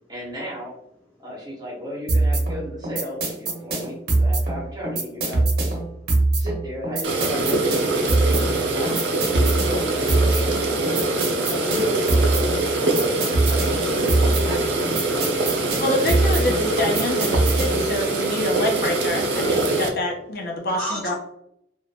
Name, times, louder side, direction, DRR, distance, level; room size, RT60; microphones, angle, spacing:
voice 1, 0.1-0.7 1.2-5.7 6.4-12.7 13.1-14.9, left 1 dB, 20° right, -5 dB, 1.0 m, -33 dB
sound 1, 2.1-17.9, right 2 dB, 55° right, 0.8 m, -23 dB
sound 2, 7.0-19.9, right 2 dB, 80° right, 0.5 m, -24 dB
voice 2, 15.8-21.1, left 1 dB, 50° left, -1 dB, 0.5 m, -26 dB
voice 3, 20.8-21.1, right 1 dB, ahead, -8 dB, 0.5 m, -37 dB
2.6 x 2.1 x 2.8 m, 0.77 s
head